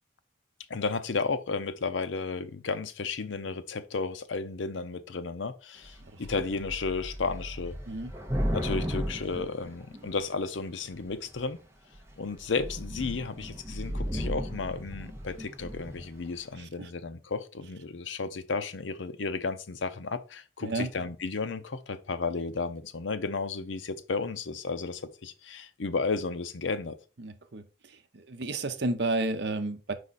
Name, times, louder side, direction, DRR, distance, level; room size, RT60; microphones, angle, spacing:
voice 1, 0.7-7.7 8.5-11.6 12.2-26.9, left 4 dB, 80° left, 0.6 m, -33 dB
Thunder / Rain, 5.8-6.0 6.2-10.4 11.1-11.5 11.9-12.1 12.4-16.1, equal, 15° right, 0.9 m, -35 dB
voice 2, 16.6-16.9 20.6-20.9 27.2-27.6 28.1-29.9, right 2 dB, 60° right, 0.7 m, -31 dB
4.9 x 4.9 x 4.1 m
head